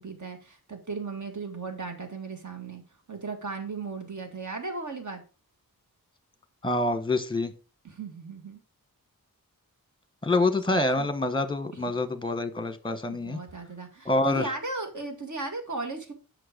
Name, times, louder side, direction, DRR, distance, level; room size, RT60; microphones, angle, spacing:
voice 1, 0.0-5.2 7.8-8.6 10.7-11.1 13.1-16.1, right 3 dB, 55° right, 1.9 m, -36 dB
voice 2, 6.6-7.5 10.2-13.4 14.0-14.5, left 2 dB, 15° left, 1.1 m, -26 dB
7.7 x 6.0 x 5.0 m
wide cardioid pair, 100°, 35 cm